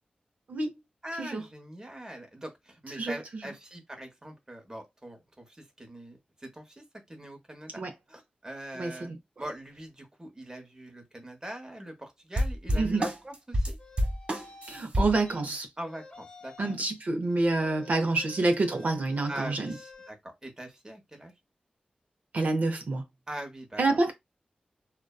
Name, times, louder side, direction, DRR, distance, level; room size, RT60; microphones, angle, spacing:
voice 1, 1.0-7.8 8.1-9.1 9.4-13.8 15.8-16.7 19.3-21.3 23.3-24.0, right 1 dB, 20° right, 0.8 m, -42 dB
voice 2, 8.8-9.2 12.7-13.1 14.7-15.7 16.6-19.7 22.3-23.0 23.8-24.1, right 2 dB, 65° right, 0.5 m, -27 dB
sound 1, 12.4-15.2, equal, 45° right, 1.2 m, -28 dB
sound 2, 13.8-14.8 15.2-15.4 15.8-16.9 17.3-20.1, left 4 dB, 30° left, 0.5 m, -50 dB
2.6 x 2.1 x 2.2 m
wide cardioid pair, 80°, 3 cm